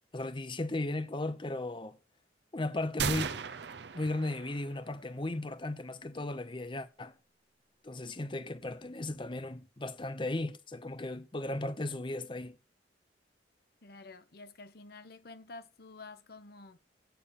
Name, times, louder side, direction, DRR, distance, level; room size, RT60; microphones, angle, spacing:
voice 1, 0.1-2.0 2.5-3.4 3.9-7.2 7.8-12.6, left 2 dB, 25° left, 0.8 m, -36 dB
sound 1, 3.0-4.9, right 6 dB, 65° right, 0.6 m, -36 dB
voice 2, 13.8-16.8, left 3 dB, 55° left, 1.0 m, -50 dB
8.5 x 6.9 x 7.2 m
head